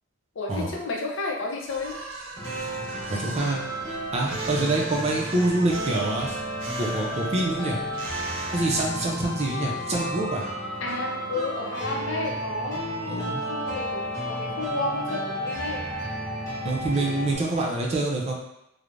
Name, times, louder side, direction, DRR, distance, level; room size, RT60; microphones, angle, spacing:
voice 1, 0.4-2.0 10.8-15.9, left 3 dB, 75° left, 0 dB, 0.5 m, -32 dB
sound 1, 1.7-9.3, right 3 dB, 85° right, 0.5 m, -41 dB
sound 2, 2.4-17.4, right 1 dB, 15° left, 1.0 m, -32 dB
voice 2, 3.1-3.6 4.1-6.4 6.8-7.8 8.5-10.4 13.1-13.4 16.6-18.3, right 2 dB, 35° right, -2 dB, 0.5 m, -26 dB
3.1 x 2.0 x 2.5 m, 0.83 s
head